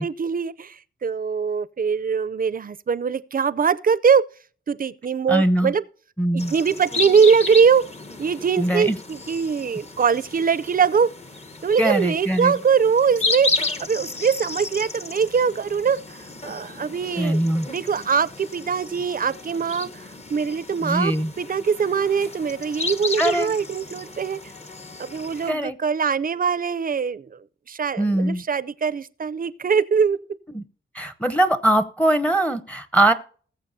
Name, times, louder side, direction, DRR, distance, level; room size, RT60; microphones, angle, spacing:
voice 1, 0.0-4.2 4.7-5.8 6.5-7.8 8.2-11.1 11.6-17.4 17.7-24.4 25.0-27.3 27.7-30.2, right 6 dB, 45° right, 0.5 m, -22 dB
voice 2, 5.3-5.7 6.2-6.5 8.6-9.0 11.8-12.6 17.2-17.7 20.8-21.3 23.2-23.5 25.5-25.8 28.0-28.4 30.5-30.6 30.9-33.1, right 1 dB, 5° left, 0.8 m, -21 dB
sound 1, 6.4-25.5, left 3 dB, 30° left, 1.1 m, -33 dB
20.0 x 7.3 x 2.7 m
wide cardioid pair, 120°, 21 cm